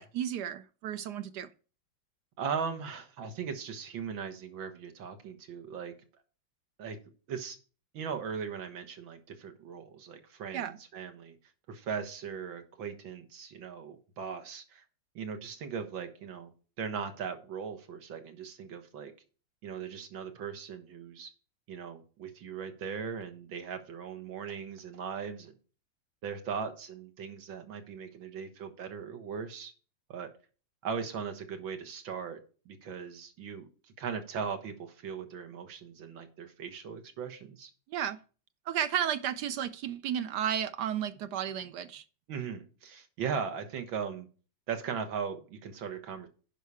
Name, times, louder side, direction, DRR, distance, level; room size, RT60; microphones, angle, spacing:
voice 1, 0.0-1.5 10.5-10.8 37.9-38.2 38.7-42.0, right 9 dB, 70° right, 1.0 m, -33 dB
voice 2, 2.4-5.9 6.8-7.0 7.3-7.6 7.9-11.4 11.7-14.8 15.2-16.5 16.8-19.1 19.6-21.3 21.7-25.5 26.2-29.7 30.1-30.3 30.8-32.4 32.7-33.7 34.0-37.7 42.3-44.3 44.7-46.3, right 6 dB, 90° right, 2.1 m, -38 dB
10.0 x 5.5 x 4.8 m
omnidirectional pair, 2.1 m